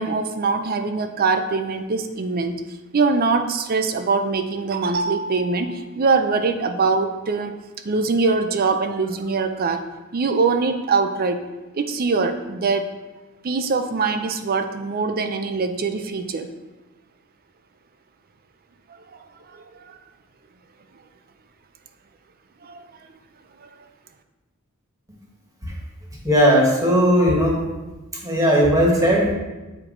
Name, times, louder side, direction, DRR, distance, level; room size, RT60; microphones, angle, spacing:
voice 1, 0.0-2.5 2.9-7.6 7.8-9.8 10.1-11.4 11.7-12.9 13.4-16.5 19.5-20.0 22.6-22.8 23.6-23.7, right 4 dB, 45° right, 8 dB, 0.5 m, -23 dB
voice 2, 26.2-27.6 28.2-29.3, equal, 15° right, -3 dB, 1.5 m, -17 dB
7.9 x 4.5 x 3.8 m, 1.1 s
head